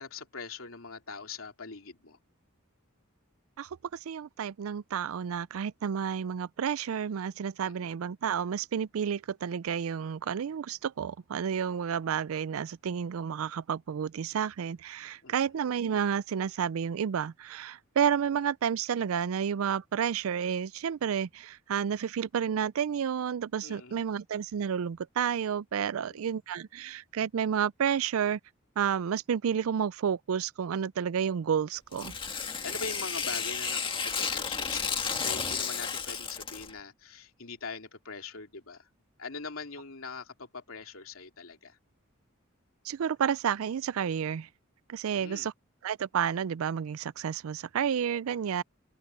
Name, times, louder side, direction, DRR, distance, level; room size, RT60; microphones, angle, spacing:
voice 1, 0.0-2.2 7.6-7.9 15.2-15.5 23.6-24.0 26.0-26.3 32.6-38.9 39.2-41.8 45.1-45.5, left 4 dB, 80° left, 2.7 m, -42 dB
voice 2, 4.1-28.4 28.8-32.1 42.9-44.5 44.9-45.5 45.8-48.6, right 8 dB, 80° right, 0.4 m, -30 dB
Tearing, 31.9-36.7, left 6 dB, 25° left, 1.8 m, -32 dB
head